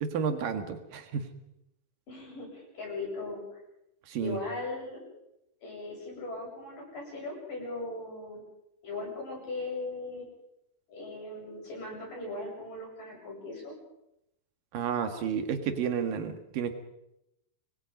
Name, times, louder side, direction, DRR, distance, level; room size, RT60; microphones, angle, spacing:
voice 1, 0.0-1.3 4.1-4.4 14.7-16.7, right 7 dB, 65° right, 7 dB, 3.2 m, -31 dB
voice 2, 2.1-3.4 4.2-5.0 5.6-8.4 8.8-10.3 10.9-13.8, left 2 dB, 55° left, -2 dB, 8.9 m, -38 dB
26.5 x 21.5 x 5.3 m, 0.86 s
omnidirectional pair, 4.6 m